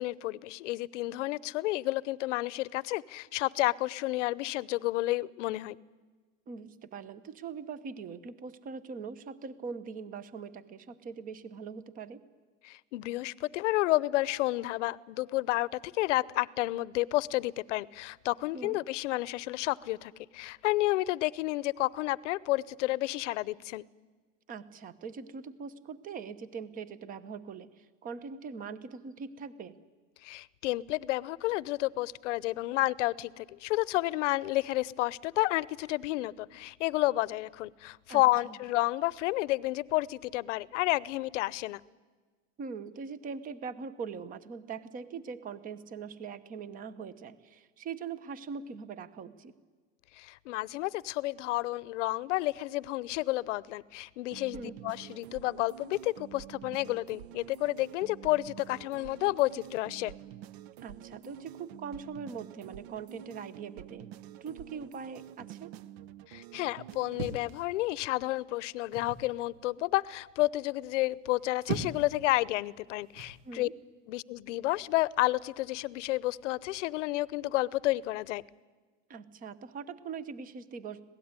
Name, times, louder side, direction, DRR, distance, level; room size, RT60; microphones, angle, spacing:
voice 1, 0.0-5.8 12.6-23.8 30.2-41.8 50.1-60.1 66.3-73.7 74.1-78.4, left 18 dB, 70° left, 21 dB, 0.8 m, -31 dB
voice 2, 6.5-12.2 18.5-18.8 24.5-29.8 38.1-38.6 42.6-49.5 54.5-54.7 60.8-64.1 64.4-65.7 73.4-73.7 79.1-81.0, right 5 dB, 20° right, 16 dB, 1.0 m, -42 dB
sound 1, 54.3-67.2, right 11 dB, 55° right, 0.8 m, -48 dB
sound 2, 67.1-68.2 68.9-69.3 71.3-72.2 73.1-73.4, right 5 dB, 80° right, 2.0 m, -38 dB
25.5 x 18.0 x 9.7 m, 1.4 s
supercardioid pair, 155°, 38 cm